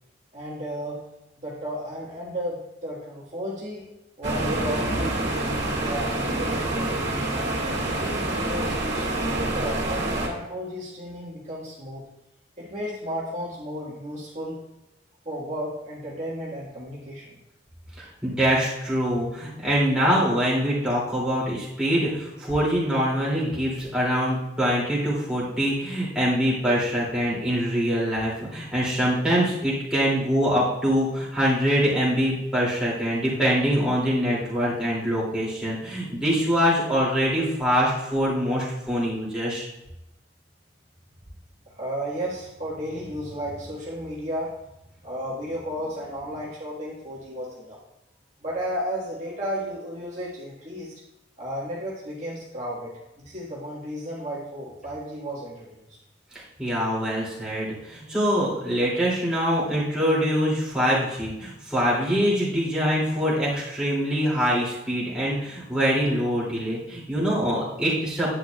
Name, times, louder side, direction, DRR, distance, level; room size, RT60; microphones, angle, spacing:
voice 1, 0.3-1.0 1.4-3.8 4.2-5.1 5.8-12.0 12.6-14.5 15.2-17.2 41.7-44.5 45.0-47.8 48.4-50.9 51.4-52.9 53.2-55.9, equal, 35° right, -6 dB, 1.6 m, -33 dB
sound 1, 4.2-10.3, right 1 dB, 65° right, 1.9 m, -27 dB
voice 2, 18.2-39.7 56.3-68.3, equal, 5° right, -8 dB, 2.6 m, -24 dB
10.5 x 8.7 x 2.3 m, 0.91 s
head